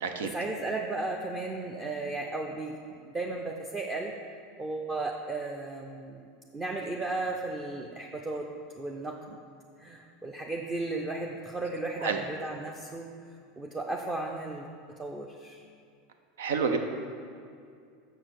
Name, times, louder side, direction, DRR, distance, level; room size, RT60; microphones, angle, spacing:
voice 1, 0.3-4.1 4.6-8.5 8.8-9.4 9.8-13.1 13.6-15.6, right 2 dB, 20° right, 0 dB, 0.6 m, -35 dB
voice 2, 16.4-16.8, right 5 dB, 90° right, 6 dB, 0.7 m, -28 dB
6.4 x 6.0 x 6.8 m, 2.3 s
supercardioid pair, 120°, 0 cm